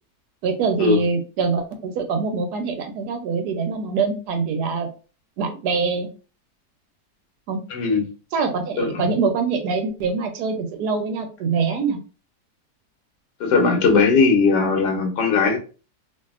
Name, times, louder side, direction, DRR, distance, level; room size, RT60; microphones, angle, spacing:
voice 1, 0.4-4.9 5.4-6.1 7.5-7.6 8.3-12.0, right 5 dB, 75° right, 5 dB, 1.0 m, -24 dB
voice 2, 7.7-8.0 8.8-9.1 13.4-15.6, left 4 dB, 75° left, 3 dB, 1.3 m, -18 dB
2.6 x 2.6 x 2.3 m, 0.36 s
omnidirectional pair, 1.8 m